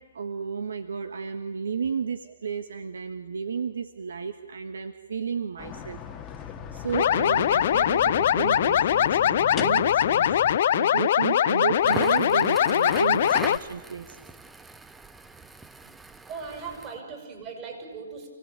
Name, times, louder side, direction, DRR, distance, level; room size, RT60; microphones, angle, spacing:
voice 1, 0.0-6.0 6.7-14.2, right 6 dB, 75° right, 9 dB, 1.4 m, -32 dB
sound 1, 5.6-10.6, left 7 dB, 20° left, 1.4 m, -39 dB
sound 2, 6.9-13.6, left 10 dB, 55° left, 0.7 m, -22 dB
Crackle, 11.7-17.0, right 3 dB, 5° right, 0.7 m, -40 dB
voice 2, 16.3-18.3, right 5 dB, 30° right, 1 dB, 6.9 m, -38 dB
28.0 x 18.0 x 9.0 m, 1.4 s
hypercardioid pair, 140°, 0 cm